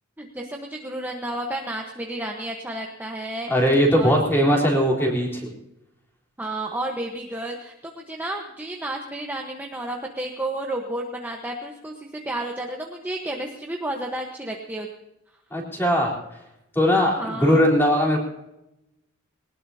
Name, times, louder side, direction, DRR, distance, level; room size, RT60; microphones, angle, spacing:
voice 1, 0.2-3.5 4.0-4.1 6.4-14.9 17.2-17.7, right 1 dB, 10° right, 0 dB, 1.2 m, -31 dB
voice 2, 3.5-5.5 15.5-16.2 16.8-18.2, equal, 10° left, -2 dB, 3.8 m, -20 dB
21.0 x 19.5 x 2.8 m, 0.89 s
head